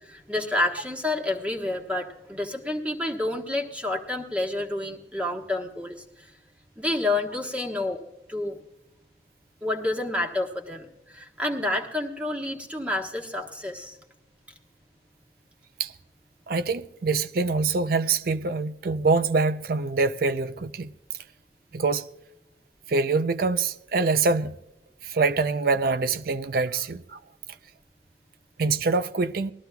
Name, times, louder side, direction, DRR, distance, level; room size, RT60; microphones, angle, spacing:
voice 1, 0.0-6.3 6.8-8.0 8.3-8.6 9.6-14.0, left 2 dB, 10° right, 1.3 m, -29 dB
voice 2, 16.5-20.9 21.7-22.1 22.9-24.6 25.0-27.2 28.6-29.5, right 4 dB, 55° right, 0.5 m, -25 dB
20.0 x 13.5 x 2.3 m
head